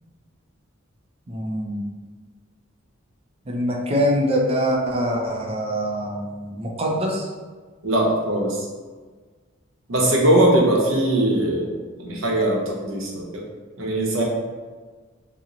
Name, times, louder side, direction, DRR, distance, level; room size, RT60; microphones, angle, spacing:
voice 1, 1.3-1.8 3.5-7.3, equal, 30° right, -1 dB, 0.5 m, -24 dB
voice 2, 7.8-8.7 9.9-11.7 12.0-13.4 13.8-14.2, right 1 dB, 70° right, -2 dB, 0.8 m, -20 dB
2.9 x 2.1 x 3.7 m, 1.4 s
head